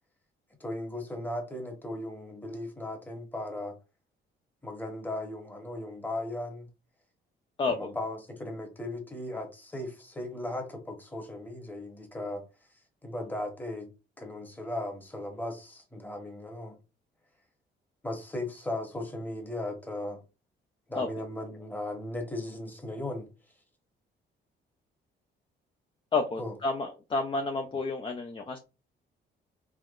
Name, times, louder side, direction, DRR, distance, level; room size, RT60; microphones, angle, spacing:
voice 1, 0.6-3.8 4.6-6.7 7.7-12.4 13.0-13.9 14.2-16.8 18.0-20.2 20.9-23.3 26.4-26.5, left 1 dB, 10° left, 1.0 m, -37 dB
voice 2, 26.1-28.6, left 3 dB, 25° left, 0.4 m, -30 dB
3.5 x 2.1 x 2.4 m
cardioid pair, 90°, 20 cm